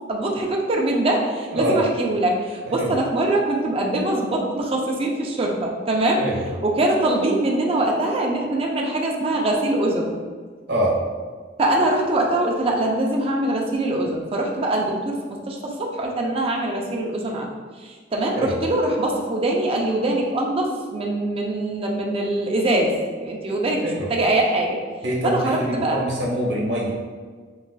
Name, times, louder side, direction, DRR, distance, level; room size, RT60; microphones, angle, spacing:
voice 1, 0.1-6.2 6.6-10.2 11.6-17.5 17.8-24.8 25.2-26.0, right 1 dB, 30° right, 0 dB, 0.5 m, -23 dB
voice 2, 2.6-2.9 6.2-6.5 10.7-10.9 18.4-18.6 23.8-24.1 25.0-26.9, equal, 70° right, -4 dB, 0.9 m, -24 dB
4.8 x 2.4 x 2.3 m, 1.6 s
head